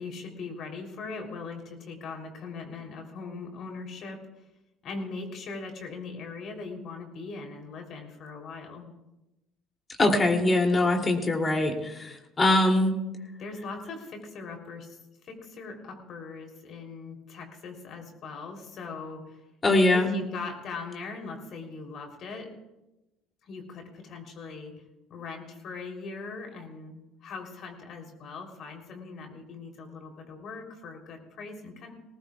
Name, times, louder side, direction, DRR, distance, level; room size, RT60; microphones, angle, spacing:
voice 1, 0.0-4.2 4.8-8.9 13.4-15.0 15.2-19.4 19.9-22.5 23.4-24.7 25.1-31.9, left 4 dB, 55° left, 3 dB, 3.3 m, -40 dB
voice 2, 10.0-12.9 19.6-20.1, left 2 dB, 30° left, 3 dB, 2.8 m, -22 dB
20.5 x 18.5 x 2.4 m, 0.96 s
hypercardioid pair, 65°, 0 cm